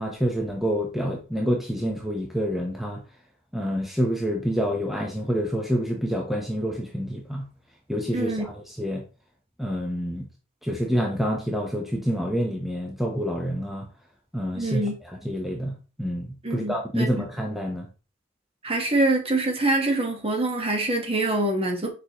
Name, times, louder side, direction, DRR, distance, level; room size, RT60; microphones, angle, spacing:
voice 1, 0.0-3.0 3.5-7.5 7.9-9.0 9.6-10.2 10.6-13.9 14.3-14.8 15.2-17.9, equal, ahead, 0.7 m, -27 dB
voice 2, 8.1-8.5 14.6-14.9 16.4-17.1 18.6-21.9, right 2 dB, 25° right, 1.3 m, -25 dB
6.8 x 4.9 x 3.0 m
head